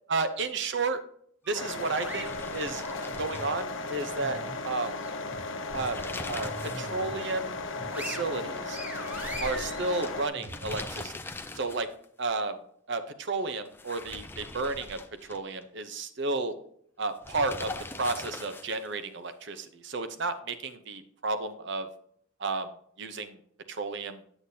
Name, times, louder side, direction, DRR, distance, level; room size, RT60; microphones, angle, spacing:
voice 1, 0.1-1.0 1.5-4.4 4.6-4.9 5.7-6.0 6.3-7.6 8.0-8.8 9.4-11.2 11.5-11.9 12.2-12.6 12.9-15.0 15.3-16.6 17.0-17.7 18.0-21.9 22.4-22.7 23.0-23.4 23.7-24.2, right 3 dB, 60° right, 10 dB, 0.8 m, -32 dB
sound 1, 1.4-3.5 3.9-5.4 5.7-5.9 6.4-7.2 7.6-11.0, equal, 10° right, 1.2 m, -42 dB
sound 2, 1.5-10.3, left 3 dB, 70° left, 0.8 m, -36 dB
sound 3, 1.7-4.1 4.4-4.5 5.5-6.9 7.2-7.3 8.9-12.0 13.6-15.6 17.2-18.9, left 2 dB, 10° left, 0.4 m, -42 dB
8.4 x 8.0 x 2.8 m, 0.65 s
head